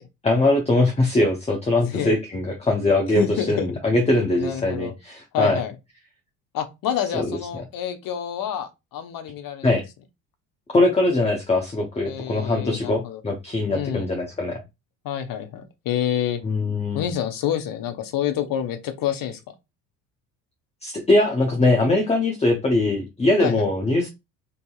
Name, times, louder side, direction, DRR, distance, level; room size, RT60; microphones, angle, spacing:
voice 1, 0.2-5.6 7.1-7.4 9.6-9.8 10.7-14.6 16.4-17.0 20.8-24.1, left 2 dB, 15° left, 0.7 m, -21 dB
voice 2, 1.8-2.2 3.1-3.7 4.4-4.9 5.3-5.7 6.5-9.7 12.0-13.2 13.7-14.1 15.0-16.4 16.9-19.4 23.4-23.7, left 10 dB, 50° left, 0.8 m, -28 dB
2.7 x 2.7 x 2.3 m
hypercardioid pair, 70°, 43 cm